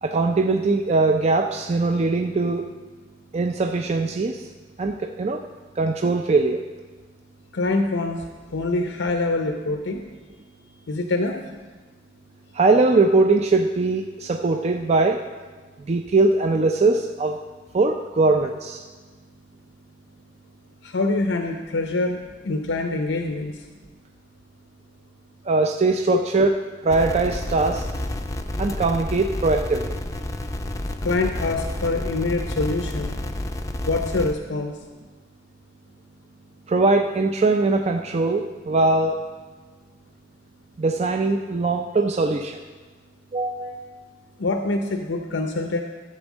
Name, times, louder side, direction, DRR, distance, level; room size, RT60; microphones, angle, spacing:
voice 1, 0.0-2.7 3.3-4.5 4.8-5.5 5.8-6.6 12.5-15.2 15.8-17.4 17.7-18.8 25.5-26.5 26.8-27.9 28.6-30.0 36.7-39.2 40.8-42.6 43.3-43.8, right 3 dB, 35° right, 4 dB, 0.4 m, -21 dB
voice 2, 7.5-8.3 8.5-10.0 10.9-11.4 20.8-23.6 31.0-33.1 33.9-34.7 44.4-45.8, left 2 dB, 85° left, 4 dB, 0.7 m, -25 dB
sound 1, 26.9-34.3, left 1 dB, 20° left, 0.5 m, -30 dB
13.0 x 4.4 x 7.2 m, 1.4 s
head